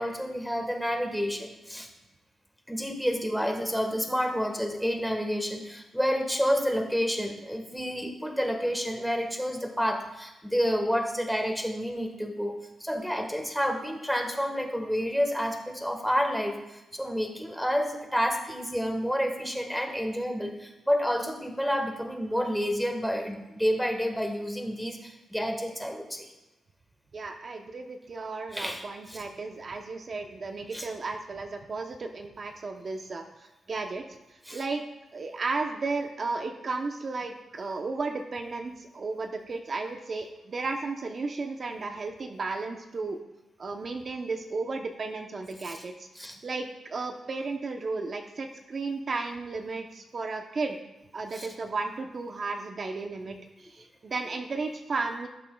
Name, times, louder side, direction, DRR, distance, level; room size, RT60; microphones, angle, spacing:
voice 1, 0.0-1.9 2.7-26.3 28.5-29.2 30.7-30.9 34.4-34.6 45.6-45.8 46.1-46.4 51.3-51.5, equal, ahead, 3 dB, 1.5 m, -29 dB
voice 2, 27.1-33.3 33.7-34.0 34.5-34.8 35.1-43.2 43.6-50.8 51.1-55.3, right 3 dB, 45° right, 4 dB, 0.8 m, -34 dB
17.0 x 7.3 x 2.3 m, 0.97 s
cardioid pair, 85°, 0 cm